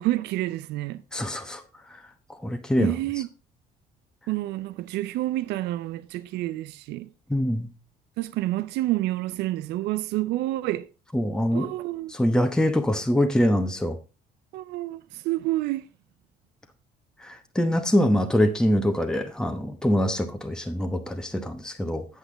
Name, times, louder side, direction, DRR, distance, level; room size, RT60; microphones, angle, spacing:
voice 1, 0.0-1.0 2.8-3.3 4.3-7.1 8.2-10.9 11.5-12.1 14.5-15.9, right 16 dB, 85° right, 0.5 m, -28 dB
voice 2, 1.1-1.6 1.9-2.0 2.4-2.9 7.3-7.7 11.1-11.7 12.1-14.0 17.2-22.1, equal, 5° left, 1.0 m, -24 dB
8.2 x 8.1 x 3.9 m
cardioid pair, 110°, 17 cm